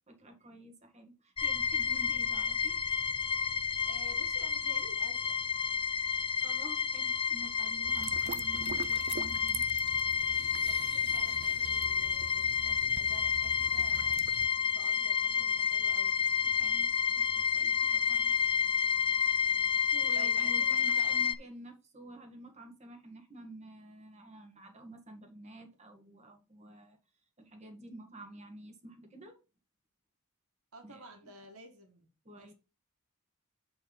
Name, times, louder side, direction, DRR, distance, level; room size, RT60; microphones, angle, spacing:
voice 1, 0.1-2.8 6.4-9.6 16.6-18.3 19.9-27.0 27.4-29.4 30.8-31.1 32.3-32.5, right 1 dB, 30° right, 1.7 m, -50 dB
sound 1, 1.4-21.3, left 6 dB, 25° left, 0.4 m, -30 dB
voice 2, 3.8-5.4 10.7-14.2 14.8-16.2 20.1-21.3 30.7-32.1 32.4-32.5, right 2 dB, 75° right, 2.0 m, -52 dB
sound 2, 7.8-14.5, right 6 dB, 50° right, 0.4 m, -44 dB
7.8 x 4.4 x 5.3 m
head